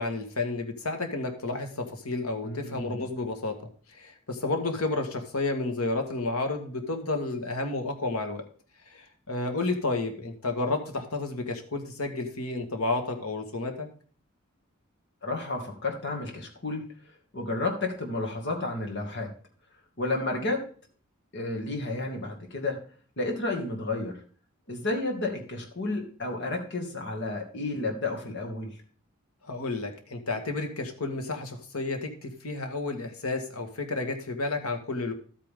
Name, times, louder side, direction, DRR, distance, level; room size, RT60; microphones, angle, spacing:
voice 1, 0.0-3.5 3.9-8.4 8.9-13.9 29.5-35.1, left 2 dB, 90° left, 5 dB, 1.8 m, -31 dB
voice 2, 2.4-3.0 15.2-16.9 17.3-19.3 20.0-20.6 21.3-22.8 23.2-24.2 24.7-28.7, left 2 dB, 55° left, 2 dB, 2.4 m, -31 dB
12.5 x 8.6 x 3.8 m, 0.43 s
head